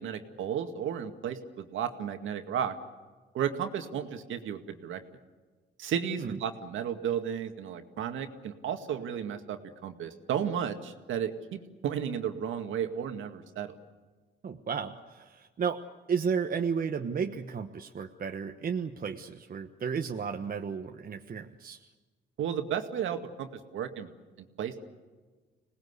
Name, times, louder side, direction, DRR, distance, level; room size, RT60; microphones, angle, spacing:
voice 1, 0.0-2.7 3.3-5.0 5.8-13.7 22.4-24.1 24.4-24.8, right 8 dB, 80° right, 6 dB, 2.2 m, -33 dB
voice 2, 14.4-15.8 16.1-21.9, right 6 dB, 45° right, 4 dB, 1.2 m, -33 dB
26.0 x 19.0 x 8.2 m, 1.3 s
cardioid pair, 90°, 20 cm